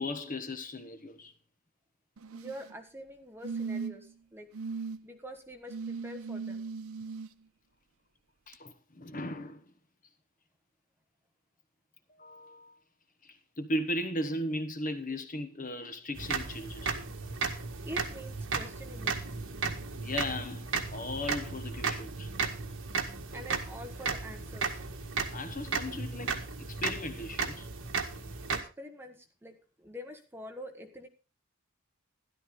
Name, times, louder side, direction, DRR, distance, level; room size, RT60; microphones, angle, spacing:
voice 1, 0.0-1.3 8.5-9.6 12.2-12.8 13.2-16.9 19.9-22.3 25.3-27.7, left 1 dB, 40° left, 1.2 m, -37 dB
sound 1, 2.2-2.7 3.4-4.1 4.5-5.0 5.7-7.3 8.5-8.6, right 5 dB, 80° right, 0.7 m, -38 dB
voice 2, 2.3-4.5 5.0-6.6 17.8-19.1 23.3-24.8 28.5-31.1, equal, 10° right, 1.4 m, -46 dB
sound 2, 16.2-28.6, right 4 dB, 60° right, 1.7 m, -35 dB
13.0 x 12.0 x 3.8 m
head